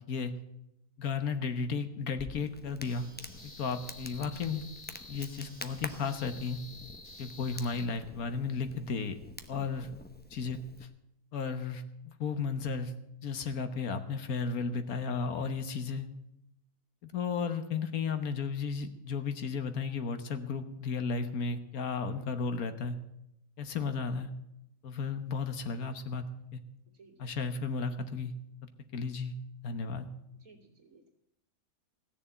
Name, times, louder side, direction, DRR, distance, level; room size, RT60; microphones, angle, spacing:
voice 1, 1.0-3.1 3.4-4.6 5.1-6.6 7.2-9.1 9.5-9.9 10.3-10.6 11.3-11.8 12.2-12.9 13.2-16.1 17.0-22.9 23.6-24.3 24.8-26.2 26.5-26.6 27.2-28.3 28.9-29.3 29.6-30.1, left 5 dB, 65° left, 9 dB, 1.4 m, -34 dB
Crackle, 2.2-10.8, left 1 dB, 15° left, 0.4 m, -48 dB
sound 1, 2.8-7.9, left 2 dB, 35° left, 2.4 m, -51 dB
voice 2, 3.3-3.7 26.9-27.2 30.3-31.1, right 3 dB, 60° right, 1 dB, 2.8 m, -60 dB
16.5 x 7.0 x 8.9 m, 0.84 s
omnidirectional pair, 1.7 m